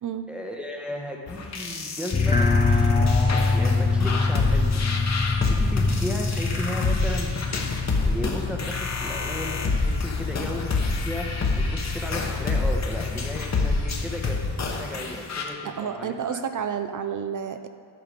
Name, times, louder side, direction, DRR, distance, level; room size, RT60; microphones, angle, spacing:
voice 1, 0.3-4.9 5.5-14.4 14.7-16.4, left 1 dB, ahead, 0 dB, 0.8 m, -35 dB
sound 1, 1.3-15.4, left 3 dB, 35° left, 1.0 m, -27 dB
sound 2, 2.1-14.6, left 4 dB, 20° left, 0.4 m, -26 dB
voice 2, 15.6-17.7, right 7 dB, 45° right, 8 dB, 0.4 m, -30 dB
10.0 x 5.7 x 5.1 m, 2.3 s
wide cardioid pair, 140°, 47 cm